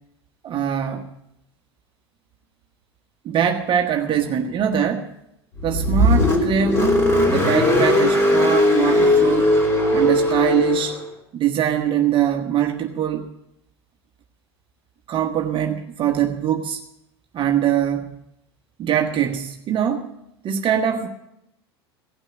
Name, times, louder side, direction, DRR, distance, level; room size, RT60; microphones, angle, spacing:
voice 1, 0.4-1.1 3.2-5.1 5.6-6.9 7.3-9.6 9.9-11.0 11.3-13.3 15.1-16.8 17.3-18.1 18.8-20.1 20.4-21.1, right 9 dB, 35° right, 4 dB, 1.2 m, -22 dB
Car, 5.6-11.0, left 1 dB, 20° left, 3.6 m, -18 dB
16.5 x 6.2 x 9.0 m, 0.81 s
hypercardioid pair, 85°, 14 cm